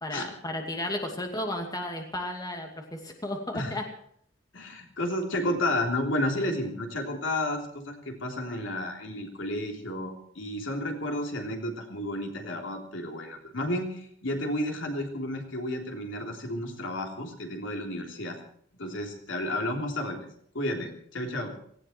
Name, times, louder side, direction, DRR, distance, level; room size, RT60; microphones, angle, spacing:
voice 1, 0.0-3.9, left 1 dB, 20° left, 3 dB, 2.5 m, -33 dB
voice 2, 4.5-18.4 18.8-20.3 20.5-21.5, left 1 dB, 70° left, 2 dB, 3.5 m, -32 dB
18.5 x 16.5 x 4.6 m, 0.63 s
head